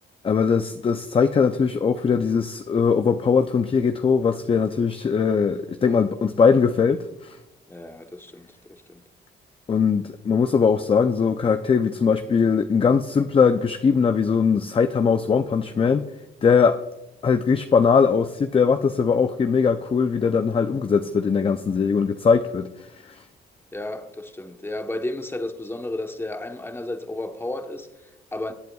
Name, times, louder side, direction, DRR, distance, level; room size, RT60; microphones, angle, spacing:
voice 1, 0.2-7.4 9.7-16.1 16.4-16.8 17.2-23.2, left 5 dB, 25° left, 0.5 m, -20 dB
voice 2, 7.7-9.1 23.7-28.5, left 1 dB, 10° left, 1.0 m, -33 dB
22.0 x 8.1 x 2.3 m
cardioid pair, 90°, 20 cm